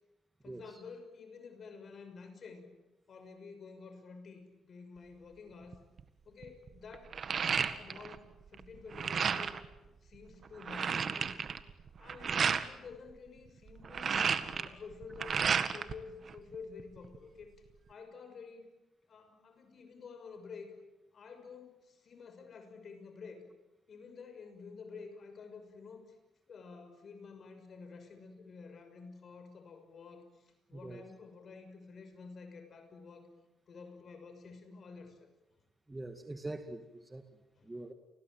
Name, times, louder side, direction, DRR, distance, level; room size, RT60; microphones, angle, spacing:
voice 1, 0.4-2.7 3.1-5.8 6.2-7.1 7.4-9.5 9.8-11.4 12.0-14.1 14.5-17.5 17.9-18.7 19.1-20.7 21.1-23.4 23.9-26.2 26.5-33.3 33.7-35.3 37.6-37.7, left 5 dB, 50° left, 8 dB, 6.2 m, -50 dB
sound 1, 5.7-6.0 6.4-8.2 8.5-9.7 10.1-10.2 10.4-12.7 13.7-15.9 16.3-17.2, right 6 dB, 50° right, 1.8 m, -32 dB
voice 2, 30.7-31.0 35.9-37.2 37.7-37.9, right 2 dB, 15° right, 6 dB, 2.2 m, -43 dB
30.0 x 20.5 x 9.2 m, 1.0 s
cardioid pair, 90°, 0 cm